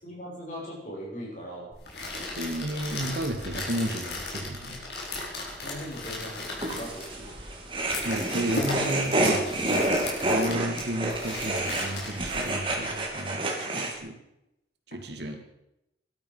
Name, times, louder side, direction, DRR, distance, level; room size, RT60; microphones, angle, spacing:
voice 1, 0.0-1.7 5.6-7.3 11.6-11.8, equal, 45° left, -3 dB, 7.3 m, -40 dB
sound 1, 1.7-13.1, left 2 dB, 70° left, 4.9 m, -37 dB
voice 2, 2.3-4.8 8.0-9.9 10.2-13.4 13.8-14.2 14.9-15.4, right 1 dB, 70° right, 5 dB, 2.4 m, -32 dB
sound 2, 6.6-13.9, right 1 dB, 30° right, 2.8 m, -29 dB
18.5 x 12.5 x 5.8 m, 0.85 s
head